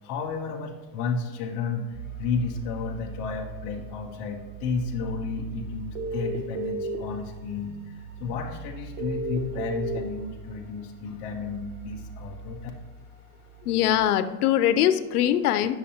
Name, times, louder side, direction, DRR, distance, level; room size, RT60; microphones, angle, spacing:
voice 1, 0.0-12.7, left 4 dB, 20° left, -1 dB, 0.3 m, -32 dB
sound 1, 1.9-14.0, right 4 dB, 35° right, 2.6 m, -42 dB
sound 2, 6.0-7.0 9.0-10.0, right 2 dB, 65° right, 1.1 m, -31 dB
voice 2, 13.7-15.8, left 11 dB, 65° left, 12 dB, 0.6 m, -22 dB
9.6 x 6.3 x 2.8 m, 1.2 s
supercardioid pair, 135°, 48 cm